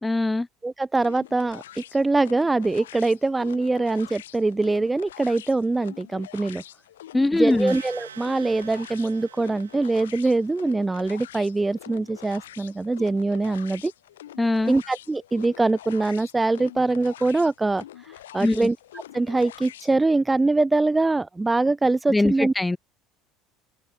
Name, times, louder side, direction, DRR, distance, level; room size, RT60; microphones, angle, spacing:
voice 1, 0.0-0.5 7.1-7.7 14.4-14.7 18.4-18.7 22.1-22.8, left 2 dB, 10° left, 1.4 m, -22 dB
voice 2, 0.6-6.6 7.3-13.9 14.7-18.8 19.1-22.5, right 3 dB, 15° right, 0.5 m, -23 dB
sound 1, 1.0-20.0, left 12 dB, 80° left, 6.8 m, -45 dB
sound 2, 7.7-10.6, right 9 dB, 85° right, 4.7 m, -45 dB
open air
hypercardioid pair, 70°, 0 cm